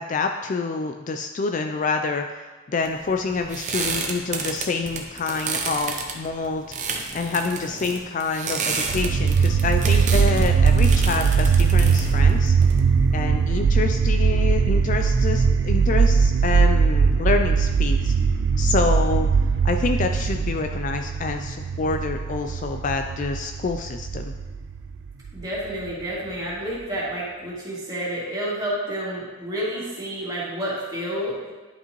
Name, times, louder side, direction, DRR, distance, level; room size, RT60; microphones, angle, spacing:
voice 1, 0.0-2.4 2.7-12.5 13.1-18.1 18.6-19.3 19.6-24.3, left 4 dB, 35° left, 5 dB, 0.3 m, -27 dB
sound 1, 2.8-13.2, right 4 dB, 35° right, 0.7 m, -31 dB
sound 2, 8.8-25.9, right 5 dB, 60° right, 0.3 m, -20 dB
voice 2, 25.3-31.3, right 1 dB, 20° right, -8 dB, 2.4 m, -29 dB
11.0 x 5.5 x 3.0 m, 1.3 s
head